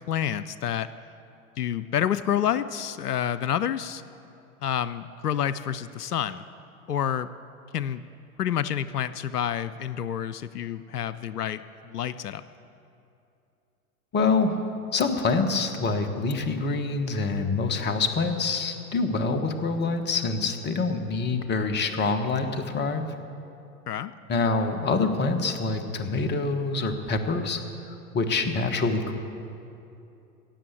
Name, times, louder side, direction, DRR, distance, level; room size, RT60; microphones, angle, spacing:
voice 1, 0.1-0.9 1.6-4.0 4.6-6.4 6.9-7.3 7.7-8.0 8.4-12.4 23.9-24.1, left 9 dB, 90° left, 14 dB, 0.5 m, -28 dB
voice 2, 14.1-14.5 14.9-23.0 24.3-27.6 27.9-29.2, left 3 dB, 25° left, 7 dB, 1.2 m, -26 dB
16.5 x 7.8 x 8.4 m, 2.7 s
figure-of-eight pair, 95°, 45 cm